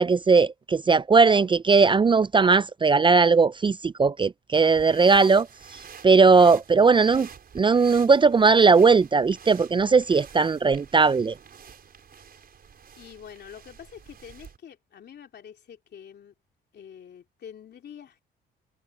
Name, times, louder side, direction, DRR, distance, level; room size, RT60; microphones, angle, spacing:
voice 1, 0.0-5.5 6.0-7.3 7.5-11.3, right 4 dB, 25° right, 0.4 m, -18 dB
sound 1, 4.7-14.6, right 7 dB, 50° right, 5.6 m, -48 dB
voice 2, 13.0-16.3 16.7-18.2, left 8 dB, 60° left, 3.1 m, -46 dB
cardioid pair, 90°, 20 cm